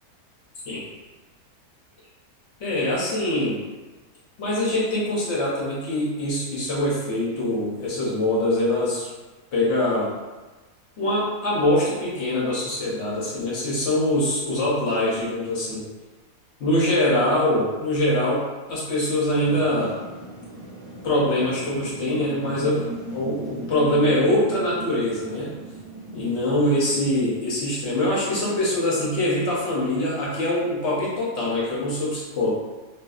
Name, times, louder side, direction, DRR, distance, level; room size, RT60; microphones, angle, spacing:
voice 1, 2.6-3.6 4.4-9.1 9.5-10.1 11.0-15.8 16.6-18.4 18.7-19.9 21.0-25.5 26.1-32.5, left 1 dB, 60° left, -6 dB, 0.8 m, -23 dB
sound 1, 19.3-27.1, right 1 dB, 50° right, 0.9 m, -38 dB
2.5 x 2.3 x 2.3 m, 1.2 s
omnidirectional pair, 1.6 m